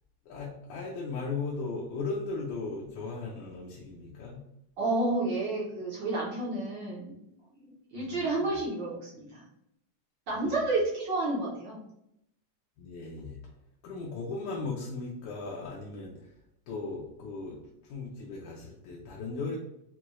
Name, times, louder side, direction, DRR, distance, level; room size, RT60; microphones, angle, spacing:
voice 1, 0.3-4.4 8.0-8.6 10.3-10.5 12.8-13.4 13.8-16.3 16.7-19.6, left 3 dB, 90° left, -4 dB, 2.2 m, -37 dB
voice 2, 4.8-7.2 7.9-9.4 10.3-11.8, right 2 dB, 70° right, -5 dB, 1.1 m, -30 dB
5.9 x 2.3 x 3.0 m, 0.80 s
omnidirectional pair, 3.3 m